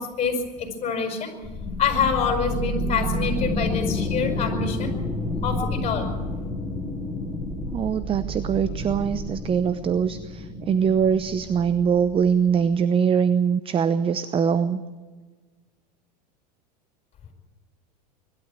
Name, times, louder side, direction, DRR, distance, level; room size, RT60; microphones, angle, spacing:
voice 1, 0.0-1.3 1.8-5.0 5.4-6.1, left 5 dB, 30° left, 3 dB, 6.2 m, -26 dB
sound 1, 1.4-12.8, left 2 dB, 10° left, 3.7 m, -30 dB
voice 2, 7.7-14.8, right 7 dB, 25° right, 14 dB, 0.8 m, -22 dB
23.0 x 12.5 x 9.1 m, 1.3 s
hypercardioid pair, 100°, 21 cm